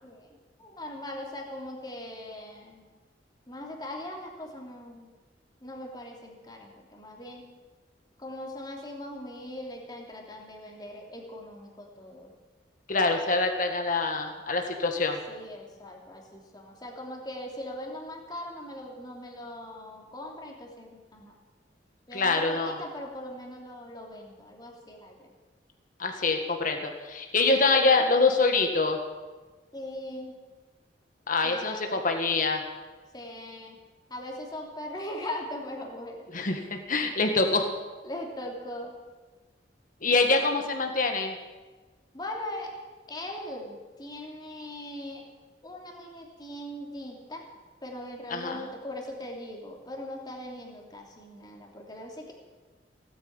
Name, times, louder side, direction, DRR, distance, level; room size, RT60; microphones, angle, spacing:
voice 1, 0.0-2.9 3.5-5.1 5.6-7.4 8.2-12.3 15.3-21.4 22.1-25.3 29.7-30.4 31.4-32.0 33.1-33.8 34.1-36.2 38.0-38.9 42.1-42.7 43.1-45.2 45.6-47.4 47.8-52.3, left 1 dB, 25° left, 0 dB, 3.0 m, -40 dB
voice 2, 12.9-15.2 22.1-22.8 26.0-29.0 31.3-32.6 36.3-37.7 40.0-41.3 48.3-48.6, left 3 dB, 50° left, 4 dB, 1.7 m, -25 dB
17.5 x 9.1 x 8.9 m, 1.3 s
head